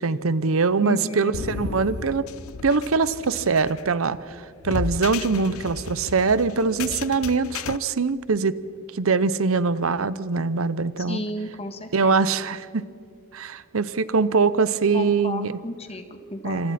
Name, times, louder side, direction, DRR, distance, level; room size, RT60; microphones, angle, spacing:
voice 1, 0.0-2.2 2.6-8.6 8.9-11.2 11.9-12.8 13.3-15.5 16.4-16.7, right 4 dB, 80° right, 16 dB, 0.8 m, -23 dB
voice 2, 0.8-1.5 11.0-12.1 14.9-16.7, left 1 dB, 30° left, 7 dB, 1.6 m, -33 dB
sound 1, 1.3-7.8, left 5 dB, 85° left, 0.6 m, -34 dB
27.5 x 26.5 x 4.3 m, 2.5 s
head